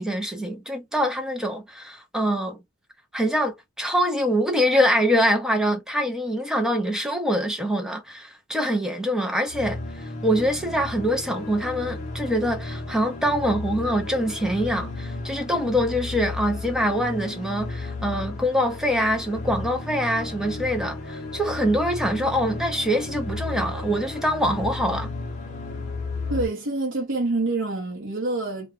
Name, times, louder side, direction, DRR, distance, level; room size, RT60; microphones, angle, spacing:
voice 1, 0.0-2.6 3.1-25.1, equal, 5° right, 0.5 m, -24 dB
sound 1, 9.5-26.5, left 2 dB, 35° left, 0.7 m, -34 dB
voice 2, 26.3-28.7, right 2 dB, 55° right, 0.7 m, -26 dB
2.3 x 2.2 x 3.0 m
head